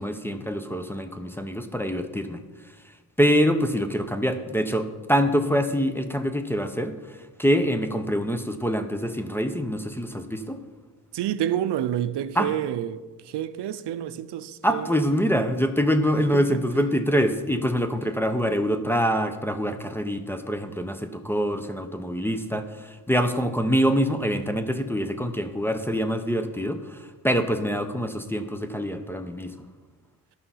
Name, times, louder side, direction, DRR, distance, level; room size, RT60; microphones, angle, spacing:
voice 1, 0.0-2.4 3.2-10.6 12.3-12.5 14.6-29.5, equal, 5° left, 0.6 m, -25 dB
voice 2, 11.1-13.0 13.3-15.0 16.3-16.5, right 11 dB, 85° right, 0.6 m, -28 dB
11.5 x 5.7 x 5.6 m
wide cardioid pair, 115°, 40 cm